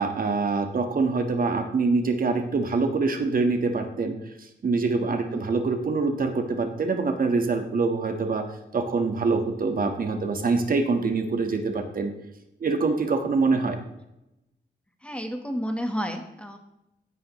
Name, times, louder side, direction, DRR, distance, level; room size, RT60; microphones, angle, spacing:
voice 1, 0.0-4.2 4.6-8.4 8.7-12.1 12.6-13.8, right 4 dB, 50° right, 6 dB, 1.4 m, -25 dB
voice 2, 15.0-16.6, equal, 5° left, 5 dB, 1.2 m, -32 dB
16.0 x 9.7 x 3.1 m, 0.89 s
wide cardioid pair, 155°, 19 cm